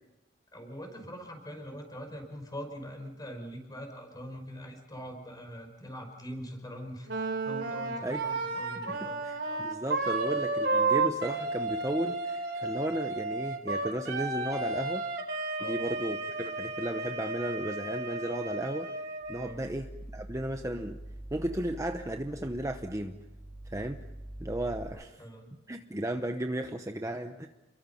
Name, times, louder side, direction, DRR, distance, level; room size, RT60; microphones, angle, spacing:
voice 1, 0.5-9.2 15.6-15.8 19.4-19.7 25.2-25.5, equal, 20° left, 4 dB, 5.5 m, -43 dB
Wind instrument woodwind instrument, 7.1-19.5, right 3 dB, 65° right, 3.9 m, -32 dB
voice 2, 9.2-15.1 15.6-18.9 19.3-21.0 21.3-23.2 23.7-24.0 24.4-25.2 25.7-27.5, right 1 dB, 15° right, 6 dB, 0.9 m, -34 dB
sound 1, 19.2-24.8, right 1 dB, 45° right, 3.8 m, -45 dB
30.0 x 22.5 x 5.7 m, 0.99 s
head